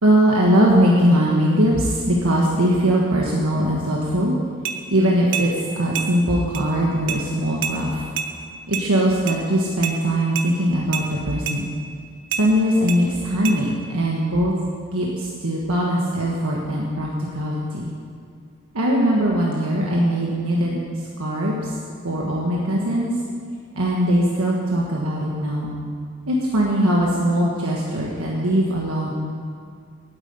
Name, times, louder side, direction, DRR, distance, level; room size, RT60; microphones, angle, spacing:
voice 1, 0.0-4.3 4.9-5.5 5.7-8.0 8.7-11.7 12.4-14.5 14.9-17.1 17.3-17.9 18.7-20.8 21.2-21.7 22.0-23.1 23.7-25.7 26.3-29.1, equal, 75° right, -3 dB, 1.5 m, -20 dB
sound 1, 4.6-4.8 5.3-5.5 5.9-6.1 6.5-6.7 7.1-7.2 7.6-7.8 8.2-8.3 8.7-8.9 9.3-9.4 9.8-10.0 10.4-10.5 10.9-11.1 11.5-11.6 12.3-12.5 12.9-13.0 13.4-13.6, right 8 dB, 60° right, 0.9 m, -27 dB
9.2 x 8.2 x 9.4 m, 2.2 s
head